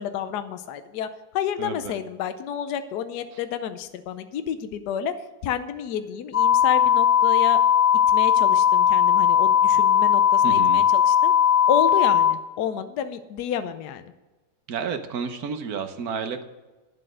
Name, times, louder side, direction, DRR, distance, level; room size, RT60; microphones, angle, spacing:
voice 1, 0.0-5.2 5.4-7.6 8.1-11.3 11.7-14.1, left 9 dB, 70° left, 10 dB, 1.2 m, -30 dB
voice 2, 1.6-1.9 10.4-10.8 14.7-16.4, right 6 dB, 60° right, 8 dB, 1.4 m, -31 dB
sound 1, 6.3-12.3, left 9 dB, 50° left, 0.7 m, -18 dB
9.9 x 7.7 x 6.3 m, 1.1 s
omnidirectional pair, 1.9 m